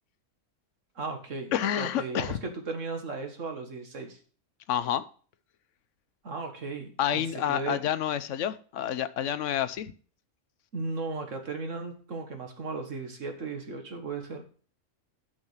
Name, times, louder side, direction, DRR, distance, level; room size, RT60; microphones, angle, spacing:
voice 1, 1.0-4.2 6.2-7.8 10.7-14.4, right 4 dB, 60° right, 5 dB, 1.9 m, -36 dB
voice 2, 1.5-2.4 4.7-5.0 7.0-9.9, left 10 dB, 65° left, 13 dB, 0.9 m, -29 dB
9.8 x 6.4 x 5.7 m, 0.43 s
omnidirectional pair, 1.5 m